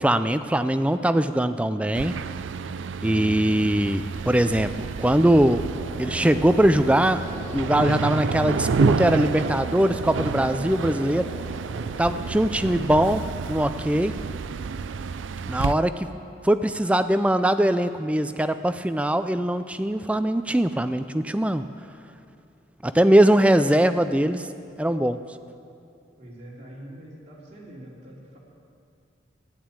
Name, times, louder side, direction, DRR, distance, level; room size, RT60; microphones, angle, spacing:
voice 1, 0.0-2.1 3.0-4.7 5.0-5.7 6.0-7.2 7.5-11.3 12.0-14.1 15.5-16.1 16.4-21.6 22.8-24.5 24.8-25.2, right 1 dB, 5° right, 10 dB, 0.3 m, -21 dB
sound 1, 1.9-15.7, right 5 dB, 85° right, 0.4 m, -29 dB
sound 2, 5.7-13.0, equal, 35° left, 4.4 m, -39 dB
voice 2, 26.2-28.4, right 1 dB, 35° right, -5 dB, 3.4 m, -44 dB
12.5 x 10.5 x 8.8 m, 2.5 s
head